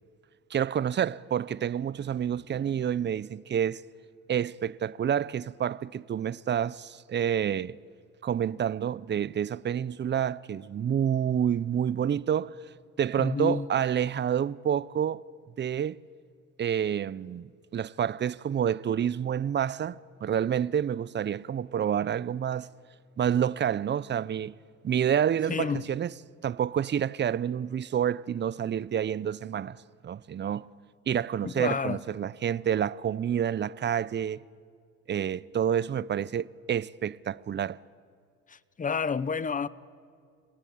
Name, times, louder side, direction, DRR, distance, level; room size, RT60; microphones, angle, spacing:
voice 1, 0.5-3.8 4.3-7.8 8.2-12.5 13.0-15.2 15.6-16.0 16.6-22.7 23.2-24.5 24.8-26.1 26.4-30.7 31.1-34.4 35.1-37.8, right 9 dB, 35° right, 0.5 m, -28 dB
voice 2, 13.2-13.7 25.5-25.8 31.4-32.0 38.5-39.7, left 5 dB, 25° left, 0.8 m, -30 dB
29.5 x 17.5 x 8.7 m
cardioid pair, 90°, 30 cm